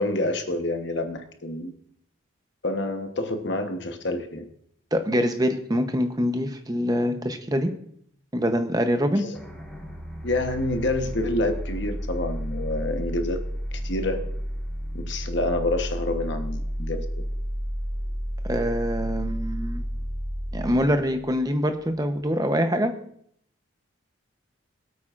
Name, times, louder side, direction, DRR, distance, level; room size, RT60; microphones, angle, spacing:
voice 1, 0.0-1.7 2.6-4.5 9.2-9.3 10.2-13.4 13.8-14.3 14.9-17.0, left 2 dB, 55° left, 6 dB, 1.1 m, -27 dB
voice 2, 4.9-7.7 8.3-9.2 18.5-19.8 20.5-22.9, equal, 20° right, 7 dB, 0.8 m, -24 dB
sound 1, 9.3-22.1, equal, ahead, 1.6 m, -32 dB
22.0 x 8.5 x 2.5 m, 0.68 s
head